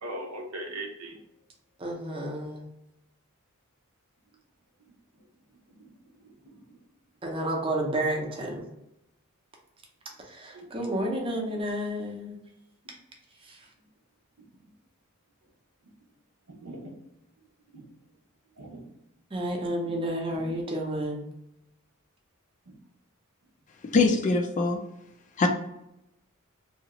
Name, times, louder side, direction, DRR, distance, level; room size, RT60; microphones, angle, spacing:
voice 1, 0.0-1.2 5.8-5.9 6.2-6.6 10.5-11.0 14.4-14.5 16.5-16.9 17.7-17.8 18.6-18.9 19.8-20.0 20.3-20.5 22.7-22.8, right 1 dB, 75° right, 1 dB, 0.7 m, -41 dB
voice 2, 1.8-2.7 7.2-8.7 10.2-12.4 13.4-13.7 19.3-21.2, right 1 dB, 25° right, 0 dB, 0.6 m, -31 dB
voice 3, 23.9-24.8 25.4-25.5, left 3 dB, 35° left, 4 dB, 0.4 m, -22 dB
2.8 x 2.4 x 2.9 m, 0.84 s
head